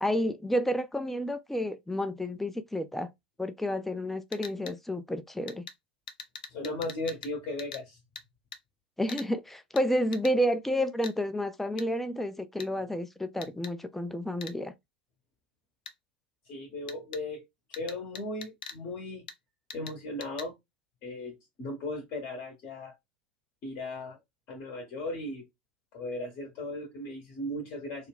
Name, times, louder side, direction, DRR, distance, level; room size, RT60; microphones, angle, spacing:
voice 1, 0.0-3.1 3.4-5.7 9.0-14.7, equal, 5° left, 0.4 m, -30 dB
sound 1, 4.3-4.8 5.5-5.8 6.1-7.3 7.6-7.8 8.2-8.3 8.5-8.6 9.1-9.3 9.8-9.9 10.1-10.3 11.0-11.2 11.8-11.9 12.6-12.7 13.4-13.7 14.4-14.6 15.9-16.0 16.9-17.2 17.7-18.8 19.3-19.4 19.7-19.9 20.2-20.5, left 6 dB, 65° left, 0.5 m, -43 dB
voice 2, 6.5-8.0 16.5-17.4 17.7-19.3 19.7-20.6 21.0-22.9 23.6-24.2 24.5-25.5 25.9-28.1, left 2 dB, 40° left, 0.8 m, -37 dB
2.3 x 2.3 x 3.3 m
figure-of-eight pair, 85°, 5 cm